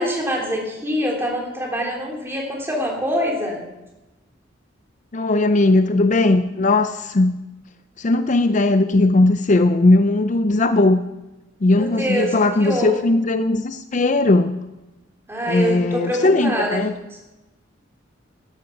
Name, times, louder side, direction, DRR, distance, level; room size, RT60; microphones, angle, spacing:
voice 1, 0.0-3.6 11.8-13.0 15.3-16.8, equal, 15° right, -1 dB, 3.2 m, -24 dB
voice 2, 5.1-7.4 8.0-11.0 11.6-14.6 15.5-16.9, left 2 dB, 40° left, 10 dB, 0.5 m, -18 dB
13.5 x 11.5 x 5.8 m, 1.0 s
head